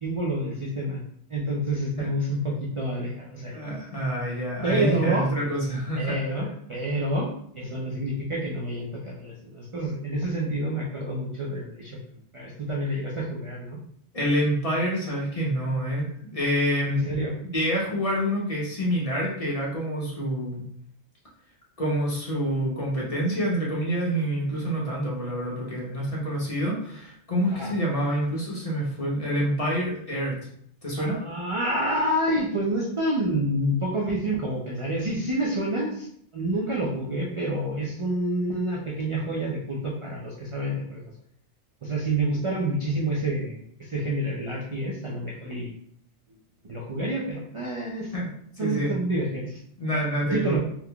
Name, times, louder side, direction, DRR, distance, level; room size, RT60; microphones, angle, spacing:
voice 1, 0.0-1.0 1.3-3.6 4.6-5.3 6.0-7.3 7.6-12.0 12.3-13.8 16.9-17.3 27.5-27.7 31.0-36.1 36.3-41.1 41.8-45.7 46.6-48.1 48.6-49.6 50.3-50.6, right 1 dB, 45° right, -3 dB, 0.4 m, -28 dB
voice 2, 3.5-6.2 14.1-17.0 17.5-20.6 21.8-30.4 30.8-31.2 48.1-48.9 49.8-50.6, equal, 35° left, -5 dB, 0.9 m, -27 dB
3.6 x 2.9 x 2.3 m, 0.66 s
omnidirectional pair, 1.2 m